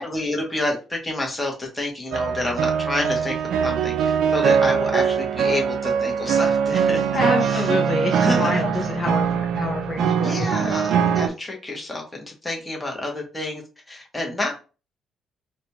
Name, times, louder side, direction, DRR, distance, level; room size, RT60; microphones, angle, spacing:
voice 1, 0.0-3.3 3.6-7.1 7.5-7.6 8.2-8.5 10.2-13.6 13.9-14.6, left 2 dB, 10° left, 0 dB, 0.9 m, -29 dB
sound 1, 2.1-11.3, right 7 dB, 70° right, 0.4 m, -22 dB
voice 2, 7.1-10.8, left 3 dB, 40° left, 0 dB, 0.6 m, -27 dB
4.0 x 2.2 x 3.0 m, 0.33 s
cardioid pair, 150°, 0 cm